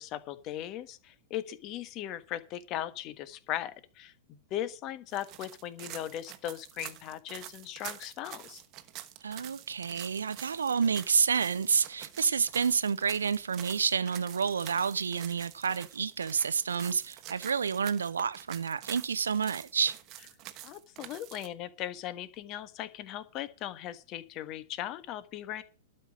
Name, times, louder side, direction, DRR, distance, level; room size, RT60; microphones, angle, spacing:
voice 1, 0.0-8.6 20.6-25.6, left 12 dB, 40° left, 1.3 m, -38 dB
sound 1, 5.1-21.5, right 14 dB, 40° right, 1.1 m, -47 dB
voice 2, 9.2-20.0, right 6 dB, 80° right, 0.7 m, -29 dB
12.0 x 5.5 x 8.5 m
hypercardioid pair, 105°, 0 cm